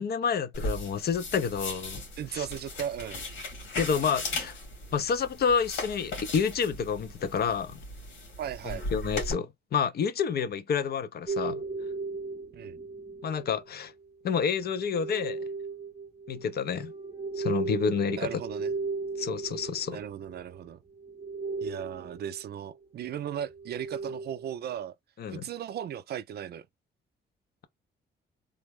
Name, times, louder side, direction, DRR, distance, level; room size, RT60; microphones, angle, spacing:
voice 1, 0.0-2.0 2.3-2.5 3.7-4.5 4.9-7.8 8.9-11.6 13.2-13.9 14.2-15.4 16.3-16.9 17.4-18.3 19.2-20.0 25.2-25.5, left 6 dB, 55° left, 0.6 m, -29 dB
sound 1, 0.5-9.3, left 2 dB, 90° left, 1.9 m, -37 dB
voice 2, 2.2-3.3 8.4-8.9 12.5-12.8 18.1-18.7 19.9-20.8 21.6-24.9 25.3-26.7, right 9 dB, 55° right, 0.4 m, -37 dB
sound 2, 11.3-13.7 14.6-20.7 21.0-22.4 23.3-24.5, right 4 dB, 20° right, 0.7 m, -36 dB
3.3 x 2.0 x 3.5 m
cardioid pair, 90°, 20 cm